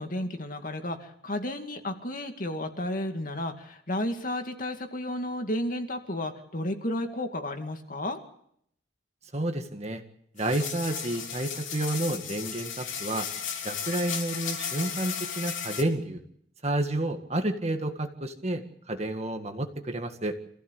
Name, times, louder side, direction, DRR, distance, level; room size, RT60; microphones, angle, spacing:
voice 1, 0.0-8.2, left 1 dB, 45° left, 5 dB, 2.3 m, -32 dB
voice 2, 9.3-10.0 10.3-13.3 13.6-16.2 16.6-20.4, right 1 dB, 35° right, 6 dB, 1.8 m, -30 dB
sound 1, 10.4-15.8, left 7 dB, 85° left, 3.2 m, -35 dB
26.5 x 15.5 x 8.2 m, 0.71 s
head